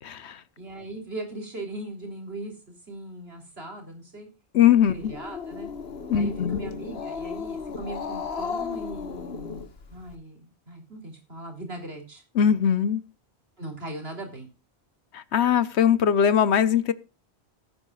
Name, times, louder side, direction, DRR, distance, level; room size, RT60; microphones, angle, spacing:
voice 1, 0.0-0.4 4.5-5.1 6.1-6.6 12.4-13.0 15.1-16.9, left 8 dB, 85° left, 1.1 m, -21 dB
voice 2, 0.6-4.3 4.9-5.7 6.1-12.2 13.6-14.5, right 1 dB, 65° right, 3.7 m, -39 dB
Growling, 4.8-10.1, left 5 dB, 70° left, 1.4 m, -35 dB
19.5 x 9.4 x 2.4 m
omnidirectional pair, 1.1 m